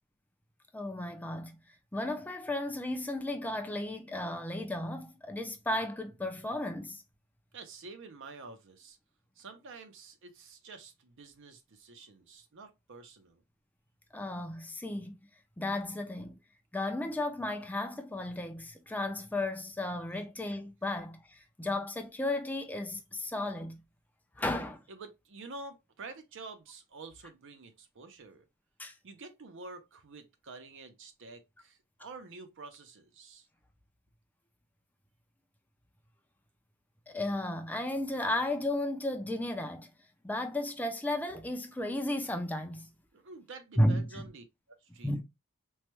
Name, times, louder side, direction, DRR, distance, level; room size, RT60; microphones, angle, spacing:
voice 1, 0.7-1.6 1.9-7.0 14.1-15.2 15.6-16.4 16.7-23.8 24.4-24.8 28.8-28.9 37.1-39.9 40.2-42.9 43.8-44.3 44.9-45.2, left 1 dB, 10° left, 0.4 m, -34 dB
voice 2, 7.5-9.0 9.4-13.4 24.9-28.4 29.0-33.5 43.1-44.4 44.8-45.2, right 3 dB, 60° right, 0.6 m, -48 dB
3.1 x 2.2 x 2.9 m
head